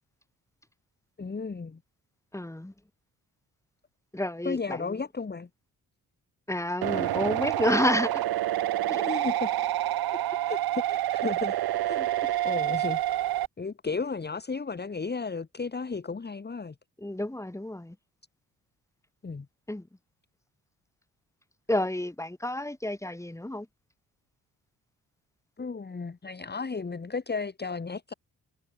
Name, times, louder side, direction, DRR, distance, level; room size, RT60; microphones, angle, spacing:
voice 1, 1.2-1.8 4.5-5.5 6.9-7.1 8.9-9.5 10.1-10.2 10.5-11.5 11.8-12.1 12.4-13.3 13.6-16.8 19.2-19.5 25.6-28.1, left 4 dB, 25° left, 1.7 m, -34 dB
voice 2, 2.3-2.7 4.1-4.9 6.5-8.2 8.9-9.0 17.0-18.0 19.7-19.9 21.7-23.7, left 1 dB, 10° left, 3.1 m, -30 dB
sound 1, 6.8-13.5, right 13 dB, 80° right, 0.9 m, -28 dB
cardioid pair, 80°, 37 cm